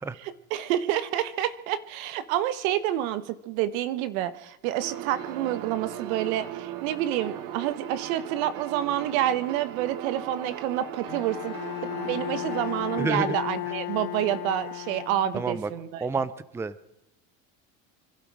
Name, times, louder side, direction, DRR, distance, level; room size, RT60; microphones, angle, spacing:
voice 1, 0.5-11.5 12.0-16.0, right 12 dB, 85° right, 13 dB, 1.3 m, -28 dB
sound 1, 4.8-13.0, right 10 dB, 55° right, 1.4 m, -38 dB
Bowed string instrument, 11.1-15.6, left 20 dB, 70° left, 1.0 m, -35 dB
voice 2, 13.0-13.4 15.3-15.7 16.0-16.8, right 4 dB, 5° right, 17 dB, 0.5 m, -29 dB
25.5 x 11.5 x 4.8 m, 0.86 s
supercardioid pair, 125°, 40 cm